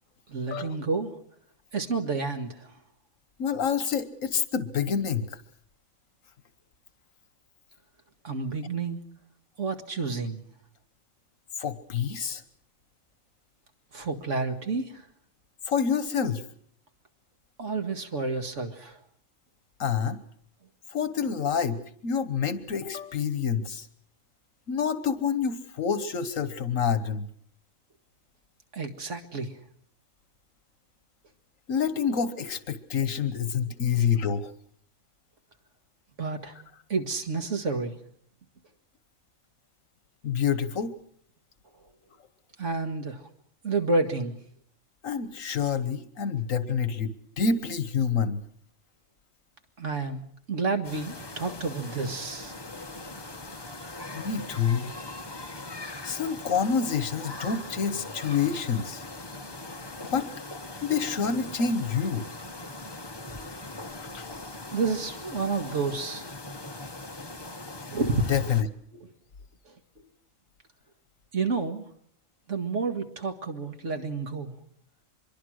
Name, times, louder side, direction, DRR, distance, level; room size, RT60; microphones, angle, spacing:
voice 1, 0.3-1.2 1.7-2.8 8.2-9.1 9.6-10.4 13.9-15.1 17.6-19.0 28.7-29.6 36.2-36.6 36.9-38.0 42.6-43.3 43.6-44.4 49.8-50.2 50.5-52.5 64.7-66.3 67.9-68.3 69.0-69.1 69.7-69.8 71.3-71.9 72.5-74.6, right 4 dB, 65° right, 6 dB, 2.2 m, -30 dB
voice 2, 3.4-5.4 11.6-12.4 15.7-16.4 19.8-20.2 20.9-23.9 24.7-27.3 31.7-34.5 40.2-40.9 45.0-48.4 54.1-54.9 56.0-59.0 60.0-60.3 60.8-62.3 64.1-64.3 68.3-68.7 68.9-69.0, left 6 dB, 80° left, 12 dB, 1.6 m, -27 dB
sound 1, 50.8-68.6, left 2 dB, 20° left, 1.0 m, -40 dB
25.0 x 22.5 x 6.4 m, 0.64 s
omnidirectional pair, 1.4 m